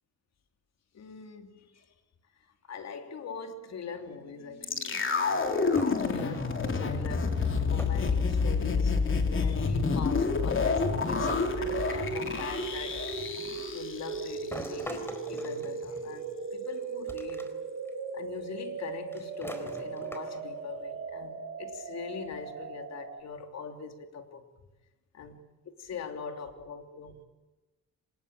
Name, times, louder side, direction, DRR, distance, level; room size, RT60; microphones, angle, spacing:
voice 1, 0.9-1.9 2.4-9.0 9.3-13.0 13.7-17.5 18.1-24.4 25.1-27.2, left 6 dB, 60° left, 6 dB, 3.2 m, -42 dB
sound 1, 4.0-23.2, right 5 dB, 50° right, 4.6 m, -39 dB
sound 2, 4.6-14.8 15.0-15.1, left 4 dB, 40° left, 3.4 m, -29 dB
sound 3, 5.7-6.7 7.8-8.1 8.4-9.0 10.1-10.2 11.3-12.6 14.5-16.4 17.1-17.5 17.9-18.0 19.1-20.6, equal, 10° left, 4.2 m, -43 dB
25.0 x 20.5 x 8.6 m, 1.1 s
cardioid pair, 90°, 30 cm